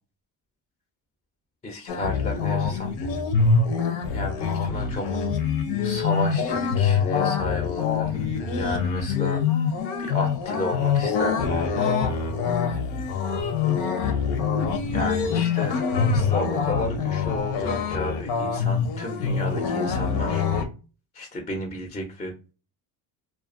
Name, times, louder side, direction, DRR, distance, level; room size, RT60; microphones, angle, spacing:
voice 1, 1.6-2.9 4.1-5.1 5.8-8.3 8.5-9.4 10.0-11.9 14.9-15.8 16.1-20.4 21.1-22.3, left 1 dB, 15° left, 3 dB, 0.5 m, -32 dB
sound 1, 1.9-20.7, left 5 dB, 85° left, 0.7 m, -25 dB
2.4 x 2.3 x 2.4 m, 0.33 s
cardioid pair, 110°, 42 cm